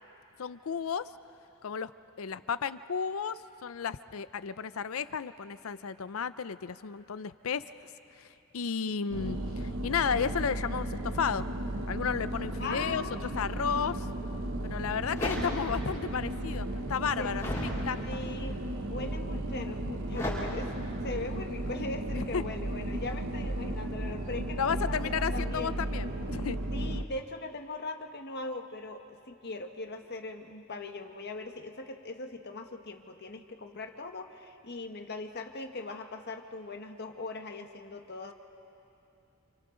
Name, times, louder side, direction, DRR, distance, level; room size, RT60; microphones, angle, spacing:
voice 1, 0.4-1.1 1.6-1.9 2.2-7.6 8.5-11.4 11.9-13.0 13.4-14.1 14.6-18.2 22.1-22.4 24.6-26.6, left 6 dB, 70° left, 14 dB, 0.5 m, -33 dB
sound 1, 9.1-27.0, right 1 dB, 65° right, 1.0 m, -35 dB
voice 2, 12.6-13.2 17.2-17.3 18.0-18.6 18.9-20.7 21.0-25.7 26.7-38.3, left 2 dB, 50° left, 4 dB, 1.4 m, -40 dB
sound 2, 14.2-14.3 14.8-16.1 16.4-17.8 18.4-18.8 20.1-20.3, left 1 dB, 15° left, 6.5 m, -36 dB
28.5 x 28.5 x 3.9 m, 2.8 s
head